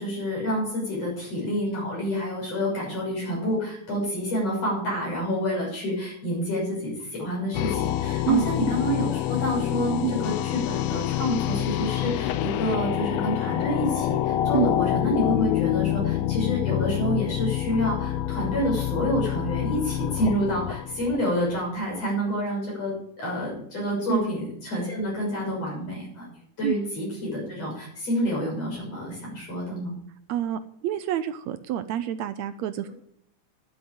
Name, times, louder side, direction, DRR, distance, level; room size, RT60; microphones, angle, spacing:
voice 1, 0.0-29.9, equal, 55° left, -4 dB, 7.8 m, -28 dB
sound 1, 7.5-21.6, left 13 dB, 80° left, 1.5 m, -27 dB
voice 2, 30.3-32.9, right 11 dB, 75° right, 11 dB, 1.8 m, -27 dB
12.0 x 8.6 x 8.8 m, 0.72 s
omnidirectional pair, 3.5 m